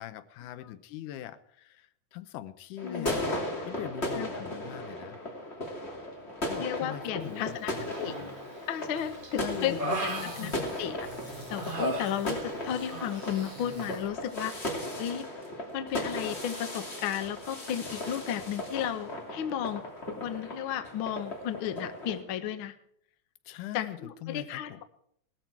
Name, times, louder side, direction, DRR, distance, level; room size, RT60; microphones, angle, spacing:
voice 1, 0.0-3.2 3.7-5.2 6.5-7.9 8.2-8.3 9.4-10.7 23.5-24.8, left 13 dB, 80° left, 13 dB, 2.3 m, -41 dB
voice 2, 2.8-3.2 4.1-4.5 6.6-7.7 8.0-8.1 8.7-10.5 10.8-11.0 11.2-15.2 15.7-19.8 20.2-22.7 23.7-24.8, left 10 dB, 65° left, 9 dB, 1.3 m, -34 dB
sound 1, 2.8-22.2, left 1 dB, 20° left, 2.6 m, -37 dB
Human voice, 7.9-8.5 9.0-11.1 11.5-12.6 12.9-13.1, right 1 dB, 35° right, 0.8 m, -35 dB
sound 2, 9.0-14.3, right 1 dB, 15° right, 6.1 m, -48 dB
18.5 x 13.5 x 4.6 m, 0.68 s
omnidirectional pair, 3.6 m